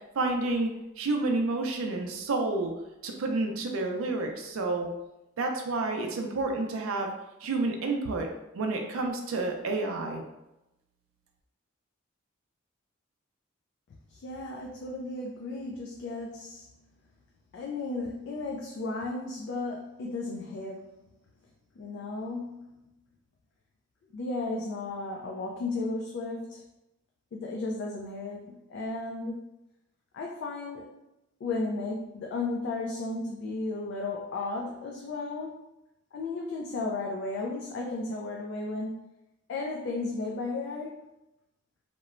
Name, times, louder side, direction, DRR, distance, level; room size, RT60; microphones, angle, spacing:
voice 1, 0.2-0.7 1.0-2.7 3.0-4.9 5.4-7.1 7.4-8.3 8.5-10.2, right 3 dB, 80° right, 3 dB, 0.4 m, -29 dB
voice 2, 14.1-16.7 17.5-20.9 21.8-22.7 24.1-26.6 27.3-29.4 30.1-31.0 31.4-35.6 36.1-39.0 39.5-41.0, left 3 dB, 55° left, -1 dB, 0.3 m, -34 dB
2.9 x 2.0 x 2.4 m, 0.93 s
head